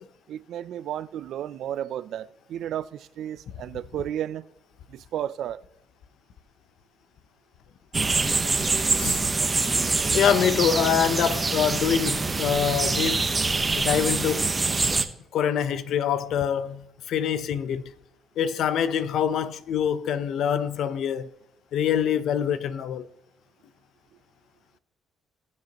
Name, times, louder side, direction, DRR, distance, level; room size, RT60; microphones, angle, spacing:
voice 1, 0.3-4.4 4.9-5.6, right 10 dB, 75° right, 0.5 m, -33 dB
sound 1, 7.9-15.0, right 3 dB, 25° right, 1.0 m, -25 dB
voice 2, 10.1-13.3 13.7-14.5 15.3-17.8 18.4-21.3 21.7-23.1, left 8 dB, 75° left, 0.7 m, -25 dB
21.0 x 7.5 x 3.0 m
cardioid pair, 90°, 0 cm